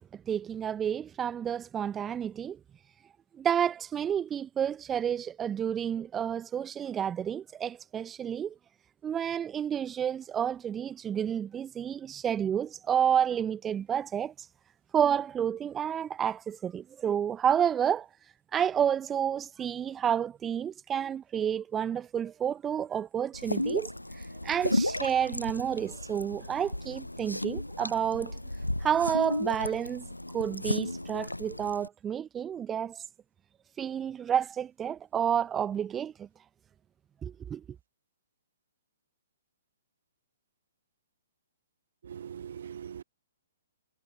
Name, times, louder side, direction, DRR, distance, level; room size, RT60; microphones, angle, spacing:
voice 1, 0.3-2.6 3.4-8.5 9.0-14.3 14.9-18.1 18.5-23.9 24.4-28.4 28.8-30.1 30.3-33.0 33.8-36.3 37.2-37.6, right 8 dB, 15° right, 1.1 m, -30 dB
sound 1, 23.3-31.9, left 1 dB, 85° left, 0.8 m, -34 dB
voice 2, 42.1-43.0, right 8 dB, 55° right, 0.4 m, -41 dB
figure-of-eight pair, 120°, 0 cm